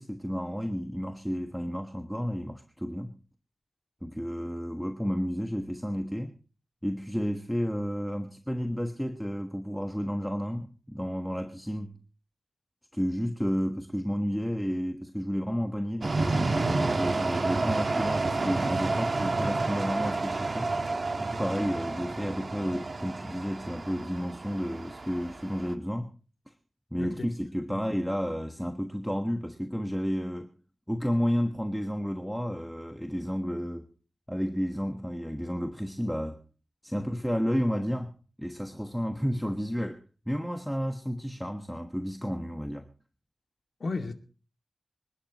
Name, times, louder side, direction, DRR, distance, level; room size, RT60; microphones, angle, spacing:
voice 1, 0.0-3.2 4.0-6.3 6.8-11.9 12.9-20.7 21.2-26.1 26.5-26.6 26.9-30.5 30.9-33.9 34.3-36.4 36.8-42.9, equal, ahead, 1.4 m, -31 dB
sound 1, 16.0-25.7, right 3 dB, 50° right, 1.6 m, -30 dB
voice 2, 27.0-27.3 27.7-27.8 36.9-37.1 43.8-44.1, left 3 dB, 65° left, 2.4 m, -34 dB
25.5 x 11.5 x 3.0 m
wide cardioid pair, 95°, 0 cm